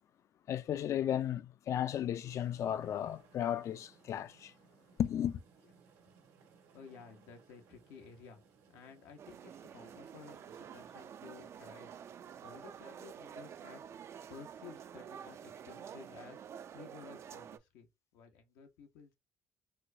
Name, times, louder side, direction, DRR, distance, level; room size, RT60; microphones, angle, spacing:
voice 1, 0.5-4.5 5.0-5.4, left 10 dB, 55° left, 0.4 m, -34 dB
sound 1, 2.3-12.8, right 6 dB, 85° right, 1.3 m, -64 dB
voice 2, 6.7-8.4 8.7-12.0 12.4-14.0 14.3-16.4 16.7-19.1, left 6 dB, 90° left, 0.8 m, -54 dB
sound 2, 9.2-17.6, right 8 dB, 45° right, 0.3 m, -49 dB
4.2 x 2.2 x 2.6 m
cardioid pair, 100°, 6 cm